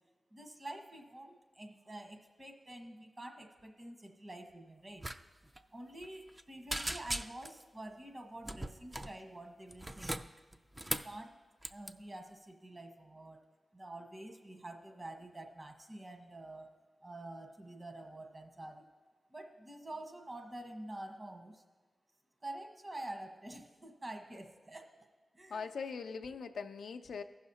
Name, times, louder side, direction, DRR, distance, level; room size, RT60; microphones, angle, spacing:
voice 1, 0.3-5.1 5.7-10.3 10.9-11.4 11.7-13.4 13.7-16.8 17.0-18.8 19.3-21.6 22.4-24.9 25.3-25.7, right 1 dB, 40° right, 4 dB, 1.4 m, -48 dB
sound 1, 5.0-5.2 5.4-5.6 6.0-6.4 6.7-7.6 8.4-9.2 9.7-11.2 11.6-11.9, right 1 dB, 15° right, 0.4 m, -39 dB
voice 2, 25.5-27.2, left 5 dB, 85° left, 7 dB, 0.4 m, -41 dB
15.5 x 6.3 x 2.8 m, 1.4 s
cardioid pair, 50°, 0 cm